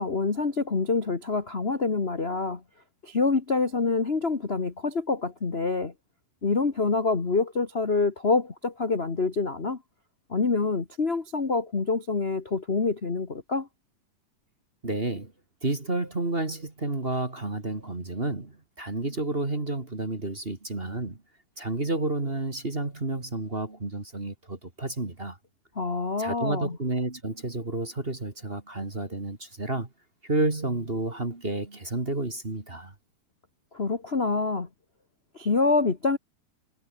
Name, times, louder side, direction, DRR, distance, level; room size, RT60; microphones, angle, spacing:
voice 1, 0.0-2.6 3.0-5.9 6.4-9.8 10.3-13.7 25.7-26.8 33.7-34.7 35.3-36.2, left 4 dB, 40° left, 0.9 m, -26 dB
voice 2, 14.8-15.3 15.6-21.2 21.6-25.4 26.2-29.9 30.2-32.9, right 2 dB, 20° right, 2.0 m, -30 dB
omnidirectional pair, 4.0 m